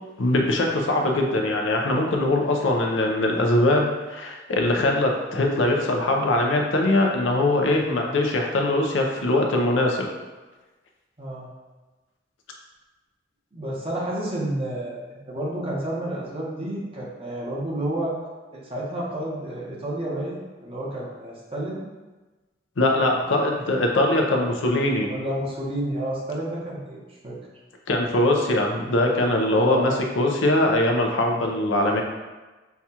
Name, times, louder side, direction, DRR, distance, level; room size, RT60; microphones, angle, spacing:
voice 1, 0.2-10.1 22.8-25.1 27.9-32.0, left 1 dB, 85° left, 1 dB, 0.6 m, -22 dB
voice 2, 11.2-11.5 13.5-18.1 18.5-21.8 23.0-23.2 25.0-27.4 29.5-29.9, right 1 dB, 30° right, -5 dB, 1.0 m, -30 dB
5.7 x 2.4 x 2.8 m, 1.2 s
head